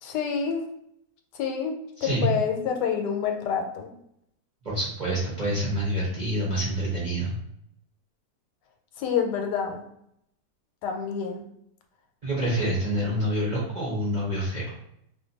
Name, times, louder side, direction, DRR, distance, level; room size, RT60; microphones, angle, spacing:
voice 1, 0.0-0.6 1.3-3.9 9.0-9.8 10.8-11.4, left 7 dB, 90° left, 4 dB, 1.2 m, -28 dB
voice 2, 2.0-2.3 4.6-7.3 12.2-14.7, right 1 dB, 45° right, -6 dB, 0.5 m, -27 dB
2.5 x 2.5 x 3.8 m, 0.74 s
omnidirectional pair, 1.8 m